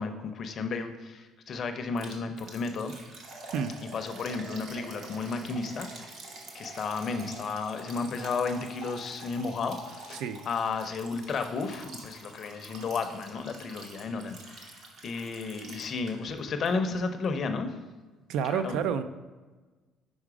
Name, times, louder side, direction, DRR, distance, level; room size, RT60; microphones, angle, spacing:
voice 1, 0.0-2.9 3.9-6.2 6.5-14.7 15.0-17.7 18.5-18.8, left 4 dB, 35° left, 7 dB, 0.5 m, -33 dB
Liquid, 2.0-16.4 16.7-16.8 17.2-17.3, right 2 dB, 50° right, 1.0 m, -46 dB
voice 2, 18.3-19.0, right 7 dB, 70° right, 12 dB, 0.4 m, -29 dB
5.1 x 4.9 x 4.8 m, 1.3 s
cardioid pair, 160°, 0 cm